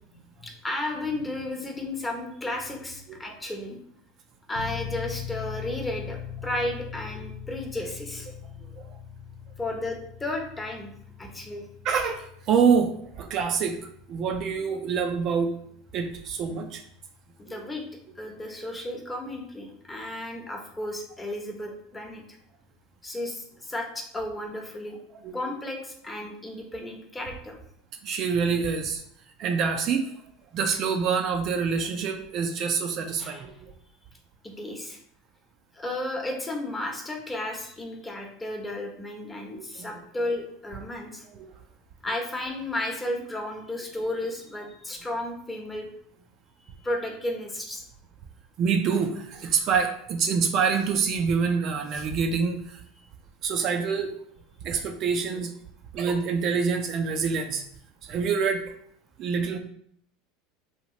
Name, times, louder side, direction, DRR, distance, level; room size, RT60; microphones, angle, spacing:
voice 1, 0.1-3.8 4.5-8.3 9.6-10.9 11.2-11.7 17.4-17.8 18.2-22.2 23.0-25.0 25.3-27.6 33.2-33.4 34.4-35.0 35.7-41.2 42.0-45.9 46.8-47.8, left 1 dB, 15° left, 1 dB, 0.8 m, -33 dB
sound 1, 4.5-19.0, left 8 dB, 70° left, 0.3 m, -42 dB
voice 2, 11.8-13.8 14.1-15.5 15.9-16.8 17.5-17.6 25.2-25.4 28.0-29.0 29.4-30.1 30.5-33.7 39.5-39.9 41.4-41.5 48.6-52.8 53.4-54.1 54.6-55.5 55.9-57.6 58.0-58.6 59.2-59.6, right 6 dB, 50° right, 5 dB, 0.4 m, -26 dB
2.9 x 2.3 x 2.9 m, 0.66 s
hypercardioid pair, 90°, 0 cm